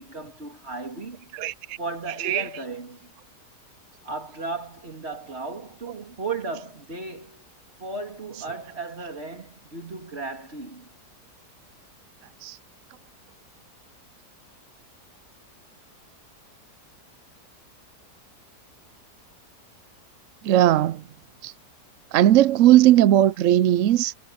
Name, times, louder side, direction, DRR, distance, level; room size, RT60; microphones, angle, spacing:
voice 1, 0.0-1.3 1.8-3.1 4.0-7.4 7.8-10.9, right 3 dB, 35° right, 3.4 m, -35 dB
voice 2, 2.0-2.7 6.5-6.6 8.3-8.6 12.4-12.6 20.4-21.1 21.4-21.5 22.1-24.1, right 13 dB, 70° right, 0.7 m, -18 dB
omnidirectional pair, 1.8 m